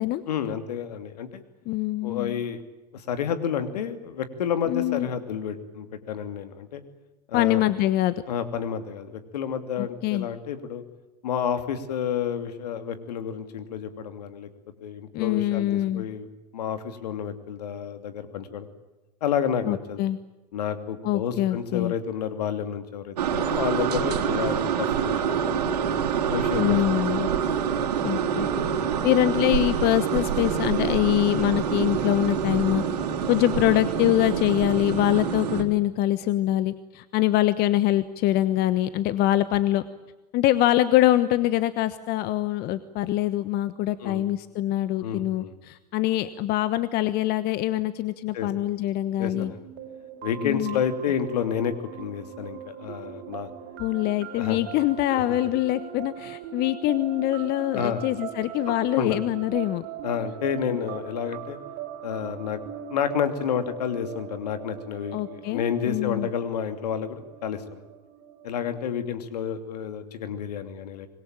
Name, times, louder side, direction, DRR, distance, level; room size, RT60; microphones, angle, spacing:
voice 1, 0.3-1.4 2.0-2.6 2.9-6.8 7.3-7.6 8.3-10.8 11.2-14.5 14.8-16.3 16.5-18.7 19.2-20.0 20.5-25.7 26.3-26.8 27.1-27.2 28.6-28.9 44.0-44.2 45.0-45.5 48.3-48.5 49.2-49.7 50.2-53.5 54.4-54.6 57.7-58.1 59.0-59.2 60.0-61.6 62.0-62.6 62.9-67.6 68.4-71.1, left 8 dB, 75° left, 9 dB, 2.8 m, -30 dB
voice 2, 1.7-2.4 4.7-5.1 7.3-8.2 9.8-10.3 15.1-16.0 19.7-20.2 21.0-21.9 26.5-27.3 28.0-28.5 29.0-32.8 33.3-39.8 40.3-49.5 50.4-50.8 53.8-59.8 65.1-66.3, left 14 dB, 50° left, 14 dB, 1.3 m, -24 dB
sound 1, 23.2-35.6, right 7 dB, 75° right, 3.2 m, -26 dB
sound 2, 49.3-68.9, right 10 dB, 55° right, 3.7 m, -40 dB
26.0 x 21.5 x 8.9 m, 1.1 s
hypercardioid pair, 85°, 20 cm